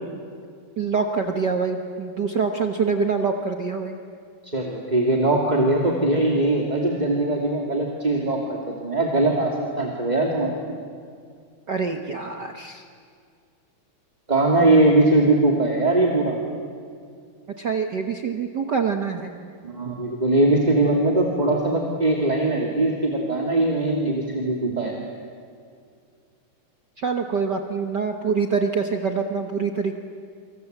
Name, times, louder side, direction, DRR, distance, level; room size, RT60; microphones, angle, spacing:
voice 1, 0.8-3.9 11.7-12.8 17.6-19.5 27.0-29.9, right 5 dB, 60° right, 5 dB, 1.1 m, -25 dB
voice 2, 4.5-9.5 9.8-10.5 14.3-16.3 19.6-24.9, right 2 dB, 15° right, 0 dB, 2.1 m, -21 dB
28.5 x 26.0 x 8.1 m, 2.2 s
omnidirectional pair, 3.6 m